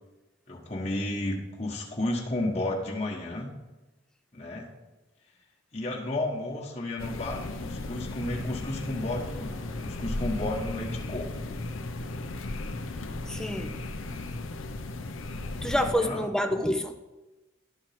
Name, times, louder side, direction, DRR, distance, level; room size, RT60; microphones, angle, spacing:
voice 1, 0.5-3.5 4.3-4.7 5.7-11.3 15.8-16.2 16.6-16.7, left 1 dB, 30° left, -3 dB, 1.3 m, -32 dB
sound 1, 7.0-15.9, left 2 dB, 75° left, 0.7 m, -36 dB
voice 2, 13.3-13.8 15.6-16.9, equal, 5° left, 7 dB, 0.5 m, -27 dB
12.0 x 4.4 x 5.9 m, 1.1 s
head